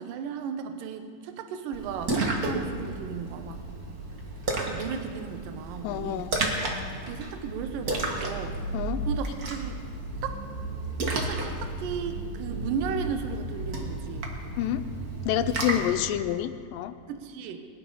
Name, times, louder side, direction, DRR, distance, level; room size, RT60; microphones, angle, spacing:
voice 1, 0.0-3.6 4.7-6.3 7.0-8.6 9.0-9.8 10.2-10.4 11.2-14.3 17.1-17.6, right 7 dB, 80° right, 7 dB, 2.6 m, -35 dB
Splash splatter, 1.7-16.0, right 2 dB, 45° right, 1.2 m, -32 dB
voice 2, 5.8-6.4 8.7-9.0 14.6-14.8 15.3-17.0, left 12 dB, 85° left, 12 dB, 2.3 m, -28 dB
20.5 x 10.5 x 5.4 m, 2.2 s
omnidirectional pair, 3.9 m